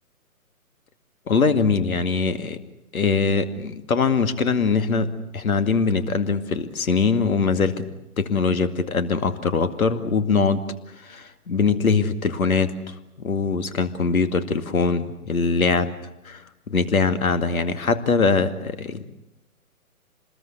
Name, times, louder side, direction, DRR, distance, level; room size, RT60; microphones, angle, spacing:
voice 1, 1.3-2.6 2.9-7.8 8.2-10.6 11.0-12.9 13.2-15.9 16.2-16.4 16.7-19.0, left 4 dB, 70° left, 10 dB, 2.4 m, -22 dB
26.5 x 20.5 x 8.1 m, 0.90 s
hypercardioid pair, 150°, 44 cm